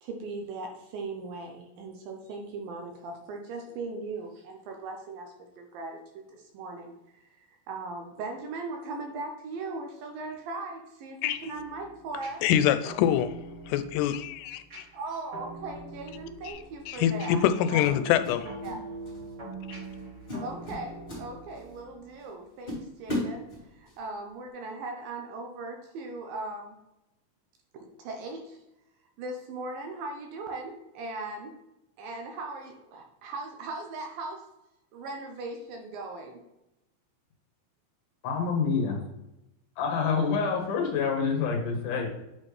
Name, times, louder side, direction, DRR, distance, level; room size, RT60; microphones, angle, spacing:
voice 1, 0.0-12.4 14.9-18.8 20.4-26.8 27.7-28.6 29.2-31.6 32.0-34.5 34.9-36.4, right 3 dB, 75° right, 2.3 m, -39 dB
sound 1, 11.5-22.1, right 2 dB, 30° right, 2.4 m, -44 dB
voice 2, 12.4-13.3 13.7-14.6 16.9-18.4, left 10 dB, 90° left, 2.6 m, -24 dB
sound 2, 16.5-16.7 17.8-18.8 19.1-19.4 19.8-20.0 20.3-21.8 22.2-22.3 22.7-24.0, left 1 dB, 15° left, 2.0 m, -36 dB
voice 3, 38.2-39.0 39.8-42.1, left 5 dB, 60° left, 2.5 m, -27 dB
8.7 x 4.4 x 3.2 m
omnidirectional pair, 4.7 m